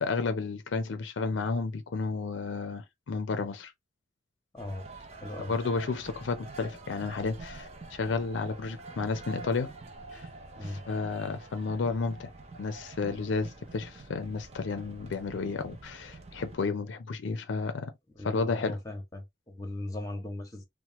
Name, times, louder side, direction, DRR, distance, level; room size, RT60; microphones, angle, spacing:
voice 1, 0.0-3.7 5.5-9.7 10.1-10.3 10.6-12.3 12.6-17.9 18.2-18.8, left 4 dB, 85° left, 0.5 m, -32 dB
voice 2, 4.5-5.5 10.6-10.8 18.2-20.6, left 1 dB, 20° left, 0.8 m, -39 dB
sound 1, 4.6-16.6, right 3 dB, 35° right, 0.5 m, -46 dB
2.9 x 2.1 x 2.9 m
head